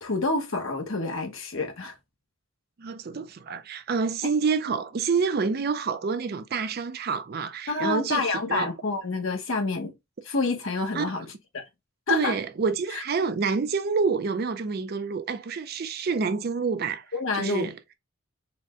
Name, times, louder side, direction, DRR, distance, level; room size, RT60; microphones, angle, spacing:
voice 1, 0.0-1.9 7.7-9.9 10.2-11.2 11.5-11.6 12.1-12.4 12.9-13.0 17.1-17.7, left 3 dB, 65° left, 0.9 m, -28 dB
voice 2, 2.8-8.7 10.9-11.2 12.1-17.0 17.3-17.7, right 5 dB, 45° right, 0.4 m, -28 dB
4.0 x 2.1 x 3.5 m
head